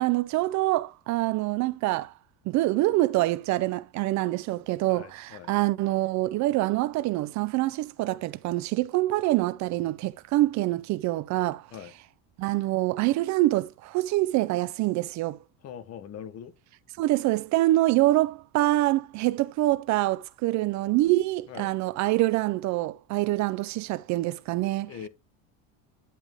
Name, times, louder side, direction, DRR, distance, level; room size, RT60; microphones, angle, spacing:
voice 1, 0.0-2.1 2.5-11.6 12.4-15.4 17.0-24.9, right 17 dB, 50° right, 0.4 m, -25 dB
voice 2, 4.9-5.5 11.7-11.9 15.6-16.5 21.5-21.7 24.9-25.1, left 8 dB, 40° left, 1.1 m, -42 dB
10.0 x 5.2 x 3.5 m
cardioid pair, 150°, 39 cm